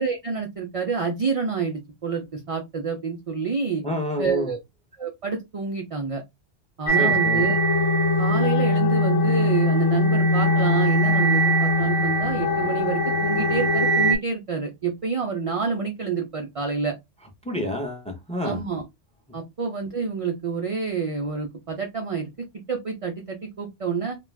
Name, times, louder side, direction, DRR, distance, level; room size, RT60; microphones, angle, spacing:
voice 1, 0.0-3.8 4.2-4.6 5.0-6.2 6.8-7.6 8.2-16.9 18.4-18.8 19.3-24.2, right 5 dB, 55° right, 0.3 m, -28 dB
voice 2, 3.8-4.5 7.0-7.5 17.4-18.6, equal, 5° left, 0.6 m, -28 dB
sound 1, 6.9-14.2, equal, 85° left, 0.9 m, -21 dB
2.4 x 2.2 x 3.2 m
omnidirectional pair, 1.2 m